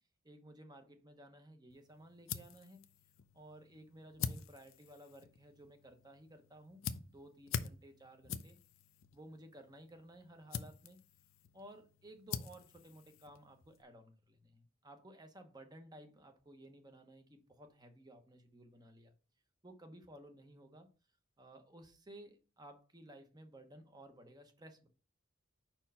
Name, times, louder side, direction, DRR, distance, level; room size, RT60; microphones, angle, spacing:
voice 1, 0.2-2.8 3.3-6.8 7.1-8.6 9.1-11.0 11.5-19.1 19.6-20.9 21.4-24.9, right 1 dB, 20° right, 6 dB, 0.9 m, -56 dB
sound 1, 1.7-13.8, left 6 dB, 75° left, 0.5 m, -46 dB
5.1 x 4.5 x 5.5 m, 0.35 s
head